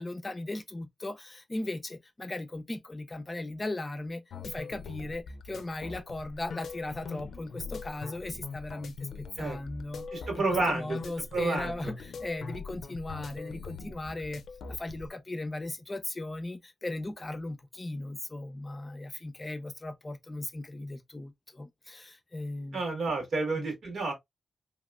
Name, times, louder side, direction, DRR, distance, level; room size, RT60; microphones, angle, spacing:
voice 1, 0.0-14.4 14.7-22.8 23.6-23.7, left 2 dB, 25° left, 0.5 m, -38 dB
sound 1, 4.3-15.1, left 4 dB, 85° left, 0.4 m, -42 dB
voice 2, 10.1-11.0 11.3-11.9 22.7-24.1, right 3 dB, 70° right, 1.6 m, -30 dB
3.1 x 2.9 x 2.2 m
cardioid pair, 90°, 0 cm